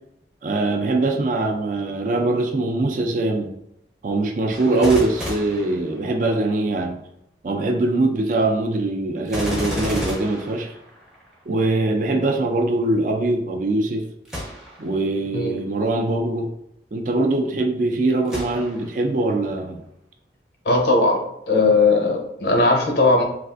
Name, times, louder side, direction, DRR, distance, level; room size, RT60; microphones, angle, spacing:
voice 1, 0.4-3.5 4.0-7.0 7.4-10.7 11.5-14.1 14.8-16.5 16.9-19.8, right 2 dB, 45° right, 3 dB, 0.4 m, -22 dB
Gunshot gunfire, 4.5-6.5 9.3-11.3 14.3-14.9 15.5-15.6 18.3-19.0 19.6-19.7, equal, 5° right, 0.6 m, -32 dB
voice 2, 20.6-21.2 21.5-23.2, left 3 dB, 70° left, 1 dB, 0.7 m, -18 dB
3.3 x 2.4 x 2.5 m, 0.78 s
head